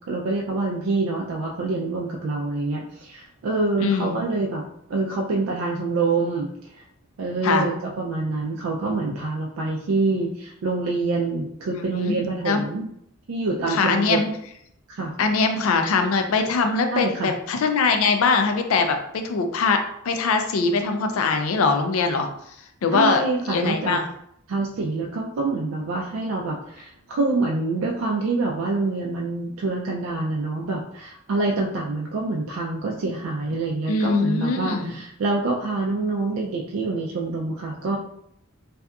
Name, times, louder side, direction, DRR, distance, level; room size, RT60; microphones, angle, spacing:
voice 1, 0.1-4.6 4.9-6.5 7.2-12.9 13.3-14.2 14.9-15.1 16.9-17.3 22.9-24.0 24.5-38.0, right 3 dB, 70° right, -2 dB, 0.3 m, -26 dB
voice 2, 3.8-4.2 7.4-7.7 11.9-12.2 12.5-12.6 13.7-14.3 15.2-22.3 22.8-24.1 33.9-34.9, left 4 dB, 75° left, 6 dB, 0.4 m, -22 dB
2.7 x 2.3 x 2.3 m, 0.72 s
head